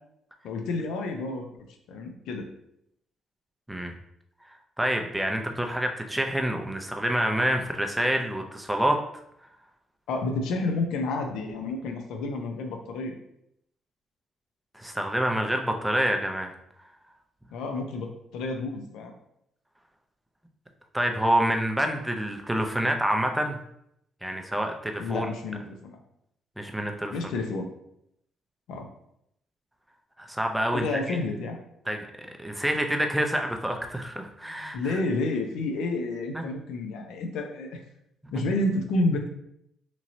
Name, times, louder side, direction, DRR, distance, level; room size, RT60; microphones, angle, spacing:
voice 1, 0.4-1.5 1.9-2.5 10.1-13.2 17.5-19.1 25.0-26.0 27.1-27.7 28.7-28.9 30.7-31.6 34.7-37.8 38.3-39.3, left 2 dB, 85° left, 3 dB, 0.5 m, -30 dB
voice 2, 4.8-9.0 14.7-16.5 20.9-23.6 24.2-25.3 26.6-27.1 30.2-31.2 31.9-32.1 32.4-35.0 36.3-36.4, right 1 dB, 5° right, 3 dB, 0.4 m, -27 dB
3.0 x 2.8 x 2.5 m, 0.77 s
cardioid pair, 90°, 0 cm